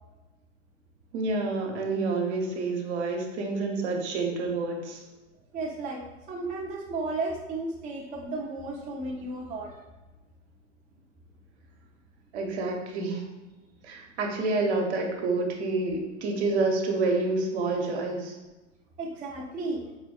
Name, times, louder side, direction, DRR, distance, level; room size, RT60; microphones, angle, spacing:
voice 1, 1.1-5.0 12.3-13.2 13.8-18.4, right 3 dB, 60° right, 2 dB, 0.9 m, -28 dB
voice 2, 5.5-9.8 19.0-19.8, right 2 dB, 20° right, -1 dB, 0.5 m, -34 dB
4.0 x 3.8 x 2.3 m, 1.1 s
hypercardioid pair, 100°, 37 cm